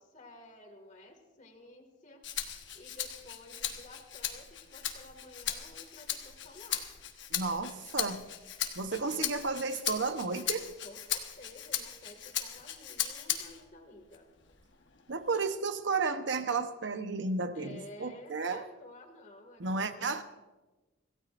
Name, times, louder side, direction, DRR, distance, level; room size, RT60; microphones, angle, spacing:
voice 1, 0.0-2.2 2.8-6.9 10.8-14.3 17.5-20.2, left 1 dB, 40° left, 4 dB, 2.0 m, -52 dB
Rattle (instrument), 2.2-13.7 14.1-15.3, left 10 dB, 65° left, 1.2 m, -38 dB
voice 2, 7.3-8.3 8.8-10.7 15.1-18.7 19.6-20.2, right 4 dB, 65° right, 9 dB, 0.9 m, -33 dB
26.0 x 15.5 x 2.5 m, 1.2 s
head